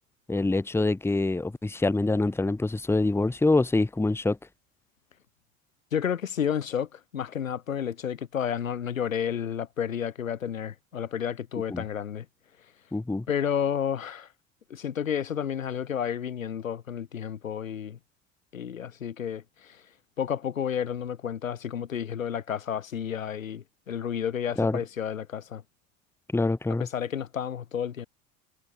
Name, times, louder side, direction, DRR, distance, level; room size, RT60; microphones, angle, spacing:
voice 1, 0.3-4.4 11.7-11.8 12.9-13.3 24.6-24.8 26.3-26.9, left 2 dB, 5° left, 1.1 m, -25 dB
voice 2, 5.9-12.3 13.3-14.3 14.7-18.0 18.5-19.8 20.2-25.6 26.8-28.1, left 8 dB, 85° left, 1.6 m, -31 dB
figure-of-eight pair, 65°, 39 cm